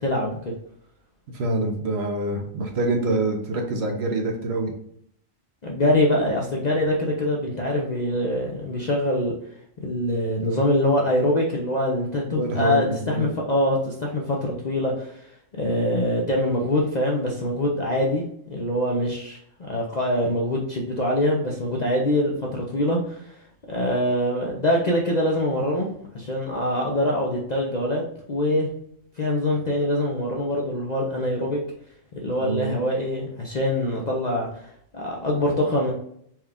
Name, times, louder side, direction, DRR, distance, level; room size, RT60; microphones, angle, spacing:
voice 1, 0.0-0.4 5.6-9.3 9.8-15.2 15.5-23.4 23.7-25.9 26.1-28.0 28.3-28.7 29.2-31.6 32.2-35.9, left 1 dB, 45° left, -2 dB, 0.6 m, -24 dB
voice 2, 1.3-4.7 12.3-13.3 32.4-32.7, right 2 dB, 60° right, 2 dB, 0.9 m, -26 dB
4.4 x 2.3 x 3.4 m, 0.68 s
omnidirectional pair, 1.3 m